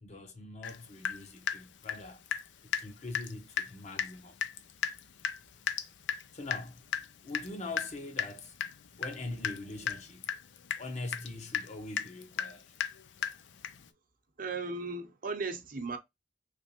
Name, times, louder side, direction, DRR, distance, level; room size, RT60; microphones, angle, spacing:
voice 1, 0.0-2.3 2.6-4.4 6.3-6.8 7.2-8.5 9.0-10.3 10.8-12.6, left 2 dB, 40° left, 0.7 m, -42 dB
Water tap faucet / Drip, 0.6-0.8 1.0-2.5 2.7-2.9 3.1-3.3 3.6-3.7 4.0-4.1 4.4-13.9, left 7 dB, 90° left, 0.5 m, -35 dB
voice 2, 14.4-16.0, right 3 dB, 50° right, 0.7 m, -36 dB
3.3 x 3.0 x 2.8 m
head